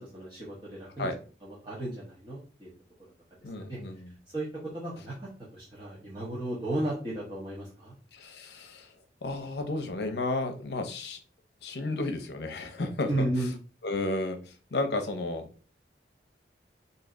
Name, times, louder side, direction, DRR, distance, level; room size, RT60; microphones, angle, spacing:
voice 1, 0.0-1.1 1.4-2.7 3.7-3.8 4.3-4.5 4.7-7.9 13.1-13.5, right 1 dB, 25° right, -7 dB, 0.9 m, -34 dB
voice 2, 3.4-4.1 8.1-8.9 9.2-11.2 11.6-13.1 13.8-15.5, left 2 dB, 75° left, 6 dB, 0.7 m, -32 dB
3.2 x 2.8 x 3.7 m, 0.38 s
head